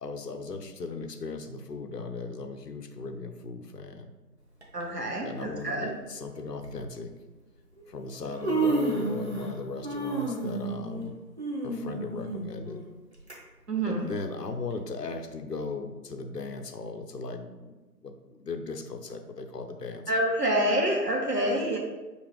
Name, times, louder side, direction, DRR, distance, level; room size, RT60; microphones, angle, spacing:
voice 1, 0.0-4.1 5.2-7.1 7.9-11.1 11.6-12.8 13.9-17.8 18.0-20.0, left 3 dB, 75° left, 6 dB, 0.7 m, -37 dB
Human voice, 4.6-4.8 5.9-6.0 6.6-6.8 7.8-7.9 8.2-9.6 9.8-13.3 13.8-13.9 14.7-14.8, right 3 dB, 40° right, 0.7 m, -31 dB
voice 2, 4.7-5.9 13.7-14.1 20.1-21.8, right 1 dB, 70° right, 0 dB, 1.2 m, -27 dB
6.1 x 2.8 x 3.1 m, 1.2 s
figure-of-eight pair, 165°, 49 cm